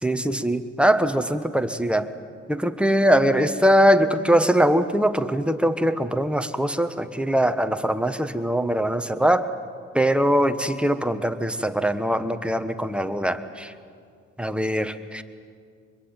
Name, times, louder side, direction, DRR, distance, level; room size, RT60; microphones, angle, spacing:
voice 1, 0.0-2.1 2.5-9.5 9.9-13.7 14.4-15.2, equal, 5° right, 8 dB, 1.3 m, -22 dB
24.5 x 22.0 x 9.0 m, 2.2 s
cardioid pair, 90°, 30 cm